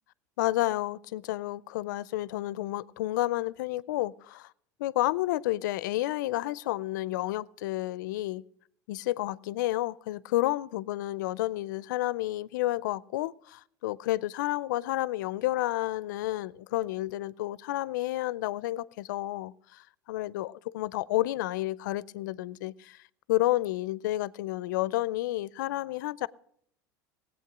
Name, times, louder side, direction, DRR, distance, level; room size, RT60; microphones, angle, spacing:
voice 1, 0.4-4.5 4.8-8.4 8.9-23.0 23.3-26.3, left 16 dB, 75° left, 0.4 m, -30 dB
17.5 x 8.2 x 6.0 m
hypercardioid pair, 95°, 10 cm